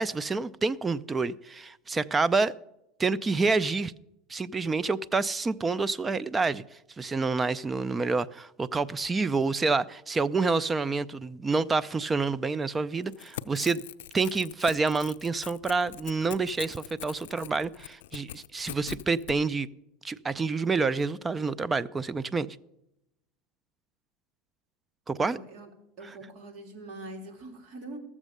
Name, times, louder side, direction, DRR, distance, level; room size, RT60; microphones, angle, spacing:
voice 1, 0.0-2.5 3.0-3.9 4.3-6.6 7.0-13.8 14.1-19.7 20.0-22.6 25.1-25.4, right 4 dB, 20° right, 19 dB, 0.5 m, -28 dB
Crackle / Tearing, 13.0-19.4, left 13 dB, 90° left, 0.4 m, -42 dB
voice 2, 25.2-25.7 26.0-28.0, right 2 dB, 55° right, 3 dB, 3.1 m, -43 dB
13.5 x 7.3 x 6.6 m, 0.84 s
supercardioid pair, 120°, 0 cm